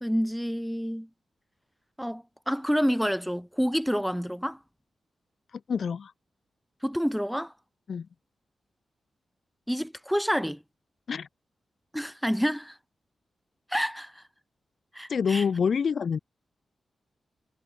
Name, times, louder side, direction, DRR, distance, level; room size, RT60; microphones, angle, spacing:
voice 1, 0.0-1.1 2.0-4.6 6.8-7.5 9.7-10.6 11.9-12.8 13.7-14.2 14.9-15.4, equal, ahead, 1.2 m, -28 dB
voice 2, 5.5-6.1 7.9-8.1 11.1-11.3 15.1-16.2, left 6 dB, 65° left, 2.3 m, -27 dB
cardioid pair, 90°, 0 cm